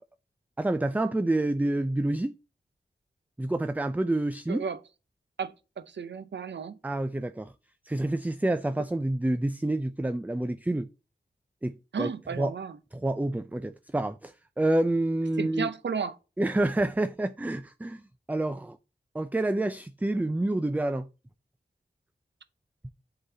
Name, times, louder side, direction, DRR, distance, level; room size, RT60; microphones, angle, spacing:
voice 1, 0.6-2.3 3.4-4.6 6.8-7.5 7.9-10.9 11.6-12.1 12.4-12.5 12.9-15.7 16.4-18.0 18.3-18.8 19.1-21.1, right 1 dB, 10° right, 0.4 m, -28 dB
voice 2, 4.5-4.8 5.4-5.5 5.9-6.8 11.9-12.8 15.4-16.1, right 6 dB, 85° right, 0.7 m, -33 dB
11.0 x 3.9 x 2.8 m
wide cardioid pair, 70°, 18 cm